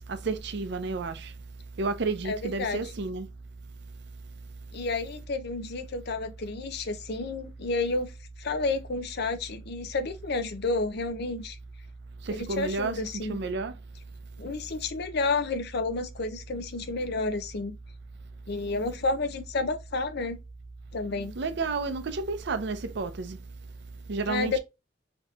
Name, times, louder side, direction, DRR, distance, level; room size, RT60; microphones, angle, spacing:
voice 1, 0.1-1.3 1.8-3.3 12.3-13.0 13.3-13.7 21.4-23.4 24.1-24.6, right 3 dB, 65° right, 0.5 m, -31 dB
voice 2, 2.2-2.9 4.7-8.1 8.4-11.6 12.3-13.4 14.4-17.8 18.5-20.4 20.9-21.4 24.3-24.6, left 3 dB, 60° left, 0.6 m, -30 dB
3.5 x 2.9 x 2.3 m
head